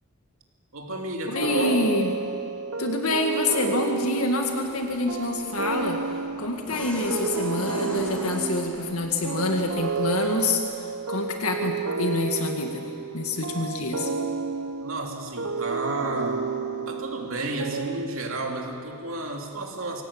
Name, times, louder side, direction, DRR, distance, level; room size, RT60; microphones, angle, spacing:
voice 1, 0.7-1.9 14.8-16.5 16.9-20.0, right 2 dB, 65° right, 1 dB, 2.9 m, -32 dB
voice 2, 1.3-2.1 2.8-6.0 6.4-10.6 11.1-12.9 13.1-14.1, left 2 dB, 90° left, 3 dB, 2.0 m, -26 dB
sound 1, 1.3-18.5, right 5 dB, 85° right, 0.9 m, -31 dB
sound 2, 4.4-10.5, equal, 5° left, 2.7 m, -42 dB
24.5 x 17.5 x 8.6 m, 2.4 s
head